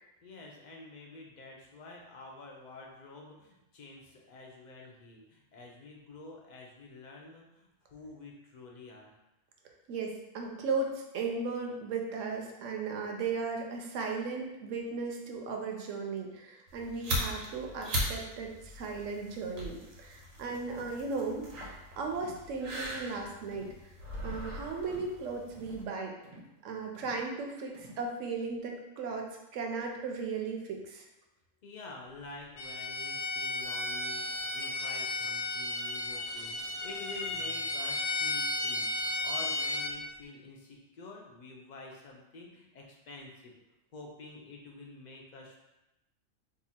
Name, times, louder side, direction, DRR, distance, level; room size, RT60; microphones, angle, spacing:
voice 1, 0.2-9.1 20.2-20.4 31.6-43.5 43.9-45.6, left 3 dB, 60° left, 0 dB, 0.4 m, -48 dB
voice 2, 9.9-23.7 24.2-26.1 26.6-31.1, right 4 dB, 75° right, 2 dB, 0.9 m, -36 dB
sound 1, 16.7-25.8, equal, 90° right, 1.2 m, -39 dB
sound 2, 21.5-21.8 22.1-22.4 22.8-23.1 23.5-23.8 24.1-24.5 24.8-25.1 25.5-25.8 26.2-26.6 26.9-27.3 27.7-28.1, right 2 dB, 40° right, 0.6 m, -52 dB
Bowed string instrument, 32.6-40.0, left 2 dB, 90° left, 1.0 m, -34 dB
2.8 x 2.3 x 4.1 m, 0.94 s
omnidirectional pair, 1.4 m